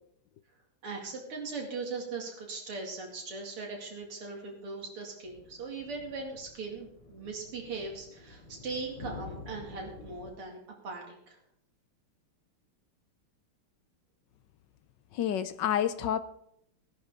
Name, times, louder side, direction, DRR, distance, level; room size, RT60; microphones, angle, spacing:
voice 1, 0.8-10.6 10.8-11.4, right 4 dB, 85° right, 0 dB, 3.3 m, -39 dB
sound 1, 5.2-10.3, left 3 dB, 90° left, 3.9 m, -48 dB
voice 2, 15.1-16.2, left 10 dB, 70° left, 13 dB, 1.2 m, -29 dB
17.0 x 11.0 x 3.7 m, 0.73 s
omnidirectional pair, 2.4 m